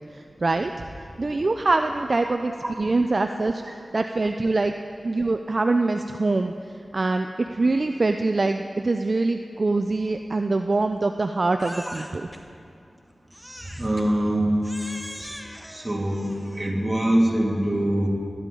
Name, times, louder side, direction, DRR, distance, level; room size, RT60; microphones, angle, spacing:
voice 1, 0.1-0.7 1.2-2.5 2.8-4.7 5.0-6.5 6.9-12.3, right 3 dB, 55° right, 6 dB, 0.4 m, -24 dB
Crying sobbing, 11.6-12.4 13.3-14.1 14.6-16.7, equal, ahead, 1.1 m, -41 dB
voice 2, 13.8-14.6 15.7-18.1, right 1 dB, 25° right, -2 dB, 2.2 m, -23 dB
17.0 x 10.0 x 3.8 m, 2.5 s
cardioid pair, 55°, 0 cm